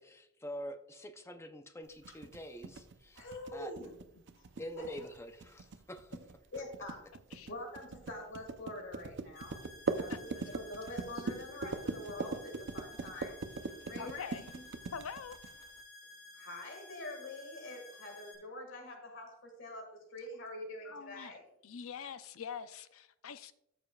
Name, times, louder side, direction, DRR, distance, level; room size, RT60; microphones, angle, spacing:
voice 1, 0.0-3.2 3.5-3.7 4.6-6.1, equal, 15° left, 7 dB, 0.6 m, -46 dB
sound 1, 2.0-15.8, right 3 dB, 60° right, 0.6 m, -40 dB
voice 2, 3.2-3.9 4.3-5.0 6.5-7.0 7.5-9.6 10.0-13.4 13.9-14.6 16.3-21.4, left 1 dB, 65° left, 3 dB, 1.9 m, -45 dB
sound 2, 9.3-18.3, left 2 dB, 50° left, 2.7 m, -54 dB
voice 3, 14.0-14.4 14.9-15.4 20.8-21.4 21.6-23.5, left 6 dB, 90° left, 13 dB, 0.5 m, -44 dB
13.5 x 6.8 x 2.4 m, 0.82 s
head